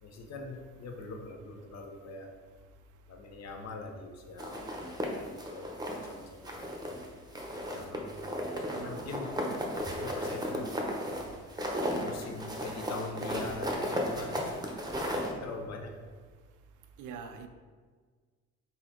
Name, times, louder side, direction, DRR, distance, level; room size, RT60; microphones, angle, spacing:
voice 1, 0.0-2.3 3.1-4.6 5.2-6.7 7.5-8.1 8.7-9.3 9.8-11.1 11.9-14.6 15.3-16.1, left 3 dB, 60° left, 3 dB, 0.7 m, -43 dB
sound 1, 4.4-6.1 6.5-7.1 7.3-15.3, equal, 15° right, 0.8 m, -35 dB
voice 2, 8.7-9.1 17.0-17.5, right 6 dB, 80° right, 7 dB, 0.5 m, -43 dB
4.0 x 2.8 x 4.3 m, 1.5 s
cardioid pair, 90°, 30 cm